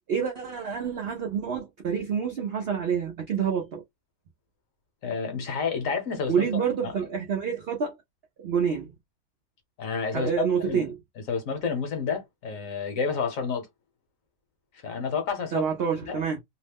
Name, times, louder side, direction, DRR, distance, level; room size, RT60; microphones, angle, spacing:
voice 1, 0.1-3.8 6.3-8.0 8.4-8.9 10.1-10.9 15.5-16.4, right 7 dB, 75° right, 0.5 m, -27 dB
voice 2, 5.0-7.0 9.8-10.3 10.6-10.9 11.3-13.7 14.8-15.6 16.1-16.2, left 5 dB, 60° left, 1.2 m, -30 dB
2.9 x 2.0 x 3.3 m
omnidirectional pair, 1.7 m